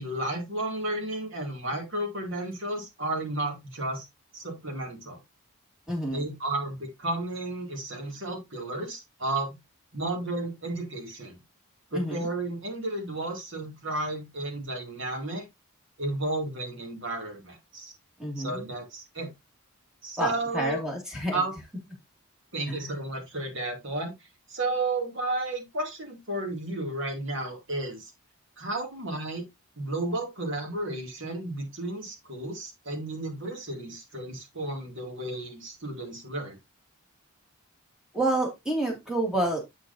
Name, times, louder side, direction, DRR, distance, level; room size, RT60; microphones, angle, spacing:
voice 1, 0.0-4.0 4.3-5.2 6.1-9.6 9.9-11.3 11.9-15.4 16.0-17.9 18.4-19.3 20.0-20.8 21.3-21.6 22.5-24.1 24.5-28.0 28.6-29.4 29.8-36.6, right 2 dB, 55° right, 2 dB, 2.4 m, -32 dB
voice 2, 5.9-6.3 11.9-12.3 18.2-18.6 20.2-21.4 22.7-23.0 38.1-39.6, right 1 dB, 5° right, 0 dB, 2.1 m, -29 dB
7.7 x 6.4 x 2.6 m, 0.20 s
head